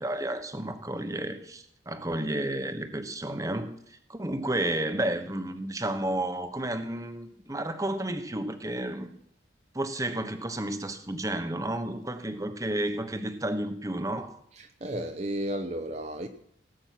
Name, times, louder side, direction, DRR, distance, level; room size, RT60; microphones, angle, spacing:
voice 1, 0.0-9.1 9.7-14.4, right 1 dB, 15° right, 1.1 m, -32 dB
voice 2, 14.5-16.3, right 1 dB, 35° right, 0.9 m, -33 dB
18.0 x 8.8 x 5.9 m
head